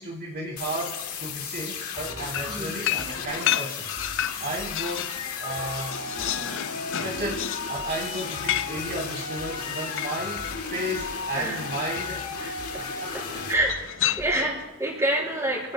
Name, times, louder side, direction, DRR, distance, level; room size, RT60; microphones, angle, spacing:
voice 1, 0.0-3.9 4.2-6.0 6.3-6.7 7.0-12.4 13.0-13.4 14.3-14.5, right 1 dB, 50° right, -2 dB, 2.8 m, -34 dB
sound 1, 0.6-13.5, left 5 dB, 75° left, 2.1 m, -34 dB
sound 2, 2.0-14.8, equal, 75° right, 3.3 m, -46 dB
sound 3, 2.3-5.2 5.6-10.6 11.7-12.3 13.6-14.7, left 12 dB, 60° left, 0.5 m, -31 dB
voice 2, 12.4-13.2 13.5-13.8 14.2-15.7, right 1 dB, 15° right, -2 dB, 5.2 m, -27 dB
28.0 x 18.0 x 2.2 m, 0.89 s
head